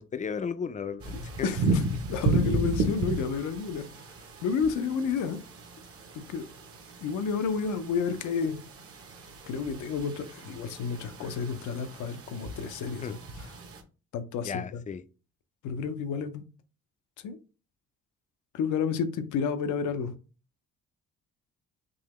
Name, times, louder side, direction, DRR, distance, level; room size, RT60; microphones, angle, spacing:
voice 1, 0.0-1.5 13.0-13.1 14.4-15.0, left 6 dB, 25° left, 0.4 m, -34 dB
sound 1, 1.0-13.8, right 2 dB, 50° right, 0.8 m, -34 dB
voice 2, 1.4-1.8 2.1-3.9 4.4-5.4 6.1-6.5 7.0-8.6 9.5-13.2 14.1-14.8 15.6-16.4 17.2-17.4 18.5-20.1, left 6 dB, 80° left, 0.6 m, -30 dB
3.8 x 2.8 x 3.0 m
cardioid pair, 90°, 30 cm